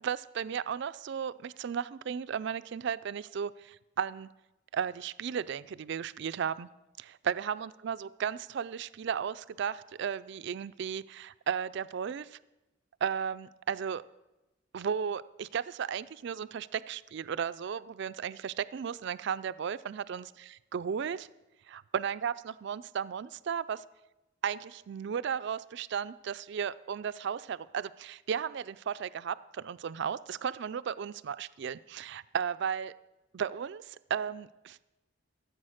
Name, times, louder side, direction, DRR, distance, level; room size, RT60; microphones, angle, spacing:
voice 1, 0.0-4.3 4.7-6.7 7.0-12.4 13.0-14.0 14.7-21.3 21.7-23.8 24.4-32.9 33.3-34.8, right 7 dB, 60° right, 16 dB, 0.4 m, -35 dB
15.0 x 8.0 x 6.4 m, 1.0 s
head